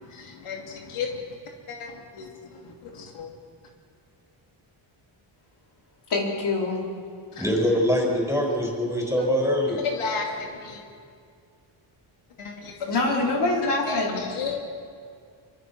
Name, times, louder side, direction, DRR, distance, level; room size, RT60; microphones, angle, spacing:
voice 1, 0.0-1.2 1.7-3.3 7.3-7.4 9.8-10.8 12.4-12.7 13.0-13.4 13.9-14.6, left 5 dB, 85° left, 1 dB, 3.0 m, -34 dB
voice 2, 6.1-6.8 12.9-14.2, left 2 dB, 55° left, -1 dB, 4.4 m, -24 dB
voice 3, 7.4-9.8, equal, 5° right, 0 dB, 5.8 m, -23 dB
25.0 x 25.0 x 6.2 m, 2.2 s
wide cardioid pair, 135°, 48 cm